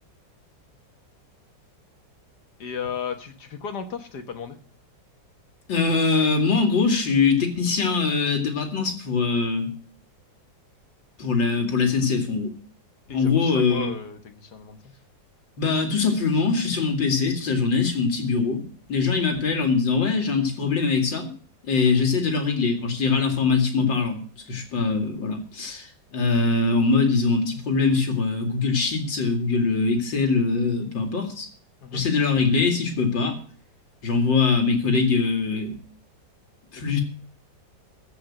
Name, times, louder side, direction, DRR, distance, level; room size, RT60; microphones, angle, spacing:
voice 1, 2.6-4.6 13.1-14.8 31.8-32.0 36.9-37.0, left 7 dB, 65° left, 7 dB, 1.9 m, -34 dB
voice 2, 5.7-9.7 11.2-12.5 13.1-13.9 15.6-18.6 18.9-21.3 21.6-24.2 24.5-31.5 31.9-33.4 34.0-35.7 36.7-37.0, left 4 dB, 90° left, 4 dB, 3.1 m, -22 dB
14.5 x 5.6 x 8.9 m, 0.43 s
omnidirectional pair, 2.0 m